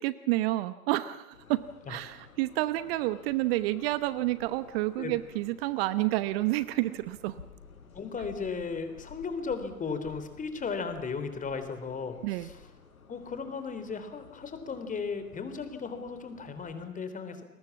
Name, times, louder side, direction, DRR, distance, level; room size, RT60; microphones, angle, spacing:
voice 1, 0.0-1.6 1.9-7.3 12.2-12.5, right 17 dB, 45° right, 15 dB, 1.0 m, -29 dB
sound 1, 1.3-16.9, left 5 dB, 75° left, 4.0 m, -54 dB
voice 2, 7.9-12.6 13.1-17.4, left 5 dB, 20° left, 9 dB, 3.6 m, -36 dB
29.5 x 22.0 x 7.3 m, 0.86 s
figure-of-eight pair, 100°, 43 cm